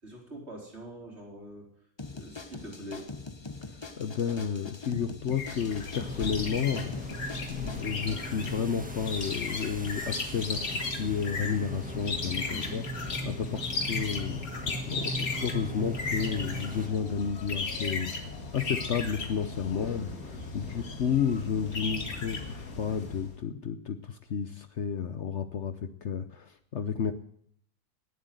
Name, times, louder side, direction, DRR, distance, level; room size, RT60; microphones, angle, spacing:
voice 1, 0.0-1.7 2.1-3.1 12.5-12.9 19.7-20.9, right 1 dB, 45° right, -1 dB, 4.5 m, -45 dB
sound 1, 2.0-7.8, left 3 dB, 20° left, 0.8 m, -43 dB
voice 2, 4.0-6.9 7.5-12.8 13.2-20.1 20.5-27.1, left 7 dB, 55° left, 10 dB, 1.0 m, -32 dB
sound 2, 5.3-23.3, left 3 dB, 75° left, 2.3 m, -36 dB
sound 3, 6.0-16.9, right 1 dB, 5° right, 1.6 m, -40 dB
18.0 x 7.9 x 7.9 m, 0.67 s
omnidirectional pair, 1.5 m